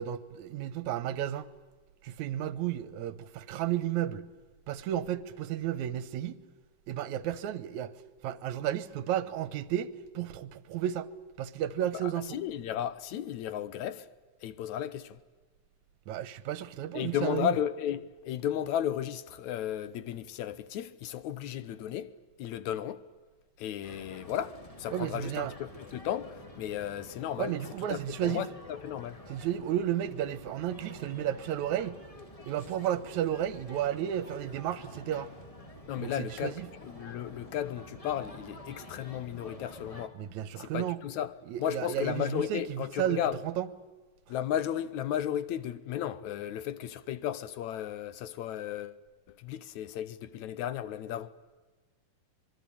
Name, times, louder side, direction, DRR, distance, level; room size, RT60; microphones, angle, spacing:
voice 1, 0.0-1.5 2.0-4.3 4.7-6.4 6.9-7.9 8.2-11.1 11.4-12.4 16.1-17.5 24.9-25.5 27.4-28.5 29.3-32.0 32.5-35.3 36.0-36.7 40.2-41.0 41.5-43.7, right 11 dB, 70° right, 2.3 m, -33 dB
voice 2, 12.0-14.1 14.4-15.2 16.9-22.1 22.4-23.0 23.6-27.5 27.9-29.2 35.9-36.5 36.8-40.2 40.6-41.3 41.6-43.4 44.3-49.0 49.3-51.3, left 10 dB, 70° left, 2.1 m, -34 dB
sound 1, 23.8-40.1, left 1 dB, 15° left, 1.6 m, -49 dB
26.0 x 22.0 x 8.6 m
omnidirectional pair, 3.8 m